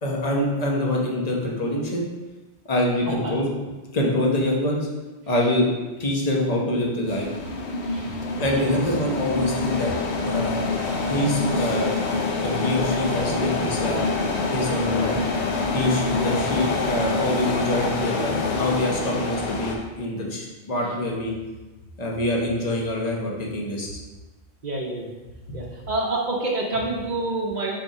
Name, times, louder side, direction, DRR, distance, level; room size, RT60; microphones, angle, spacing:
voice 1, 0.0-2.0 2.7-3.5 3.9-4.8 5.3-5.7 6.0-7.3 8.4-10.6 11.1-11.9 12.4-14.0 14.5-15.2 15.7-21.3 22.0-23.9, left 1 dB, 40° left, -2 dB, 1.1 m, -25 dB
sound 1, 7.1-19.8, left 3 dB, 80° left, 1.1 m, -26 dB
voice 2, 7.8-8.2 8.6-8.7 16.9-17.1 24.6-25.1 25.5-27.8, right 2 dB, 45° right, -3 dB, 0.8 m, -28 dB
4.8 x 3.7 x 5.3 m, 1.2 s
omnidirectional pair, 1.1 m